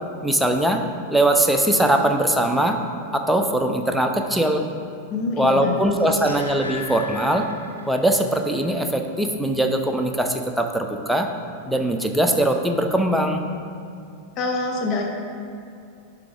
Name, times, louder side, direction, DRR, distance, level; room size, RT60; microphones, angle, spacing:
voice 1, 0.2-0.8 1.1-2.8 3.1-4.6 5.4-7.5 7.9-11.3 11.7-13.4, right 1 dB, ahead, 4 dB, 0.6 m, -21 dB
voice 2, 5.1-6.1 14.4-15.0, left 3 dB, 35° left, 1 dB, 0.9 m, -25 dB
sound 1, 5.8-8.2 8.5-8.6, left 4 dB, 85° left, 0.7 m, -37 dB
11.0 x 3.8 x 4.6 m, 2.5 s
figure-of-eight pair, 90°, 0 cm